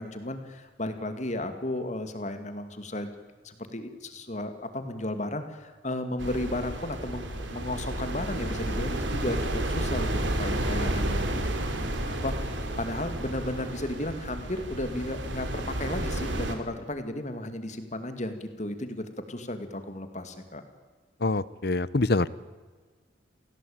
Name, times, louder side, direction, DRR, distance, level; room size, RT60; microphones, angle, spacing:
voice 1, 0.0-3.1 3.4-11.3 12.1-20.6, left 1 dB, 40° left, 8 dB, 2.5 m, -34 dB
sound 1, 6.2-16.6, right 1 dB, 75° right, 3.4 m, -31 dB
voice 2, 21.2-22.3, left 2 dB, 55° left, 18 dB, 0.9 m, -25 dB
29.0 x 17.5 x 8.9 m, 1.5 s
head